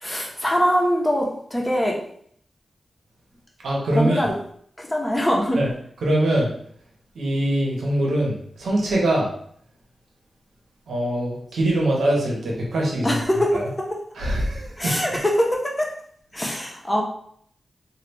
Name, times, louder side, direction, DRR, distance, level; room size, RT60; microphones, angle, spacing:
voice 1, 0.0-2.0 4.0-4.3 4.8-5.6 13.0-14.0 14.8-15.9 16.3-17.0, equal, 20° left, -1 dB, 0.9 m, -22 dB
voice 2, 3.6-4.3 5.6-5.7 6.0-6.5 7.1-9.3 10.9-13.2 13.5-13.7 14.2-14.9, right 1 dB, 85° right, -3 dB, 0.9 m, -23 dB
3.2 x 2.4 x 3.1 m, 0.65 s
cardioid pair, 50°, 0 cm